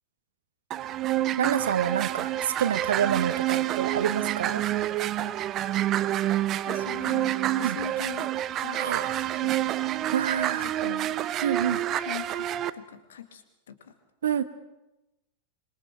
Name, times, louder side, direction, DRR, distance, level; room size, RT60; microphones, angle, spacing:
sound 1, 0.7-12.7, right 13 dB, 30° right, 0.7 m, -28 dB
voice 1, 1.4-4.6 7.6-7.8 8.8-9.2 10.1-10.7 11.4-11.8 14.2-14.4, right 9 dB, 65° right, 12 dB, 1.2 m, -27 dB
voice 2, 6.7-8.3 8.6-8.8 9.4-9.8 10.6-11.1 12.0-13.9, left 8 dB, 65° left, 8 dB, 2.1 m, -41 dB
26.0 x 22.5 x 4.6 m, 0.98 s
figure-of-eight pair, 90°, 0 cm